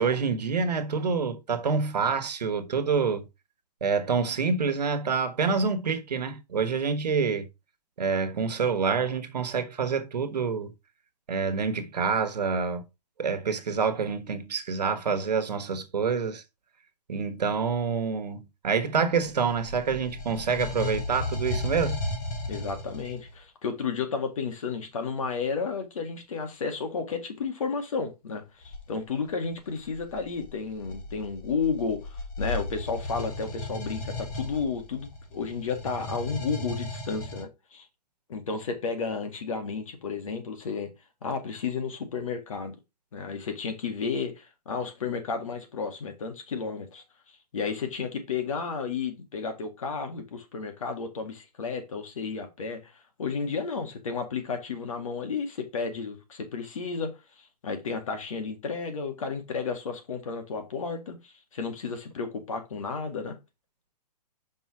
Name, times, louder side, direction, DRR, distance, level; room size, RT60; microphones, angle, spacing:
voice 1, 0.0-3.2 3.8-7.5 8.0-10.7 11.3-12.9 13.2-16.4 17.1-22.0, right 5 dB, 80° right, 1.2 m, -27 dB
sound 1, 19.2-23.3 28.6-28.9 29.6-37.4, left 2 dB, 25° left, 1.4 m, -35 dB
voice 2, 22.5-37.9 38.3-40.9 41.2-42.8 43.1-47.0 47.5-52.9 53.2-57.1 57.4-63.4, left 5 dB, 55° left, 1.9 m, -32 dB
5.5 x 4.6 x 4.7 m
hypercardioid pair, 170°, 21 cm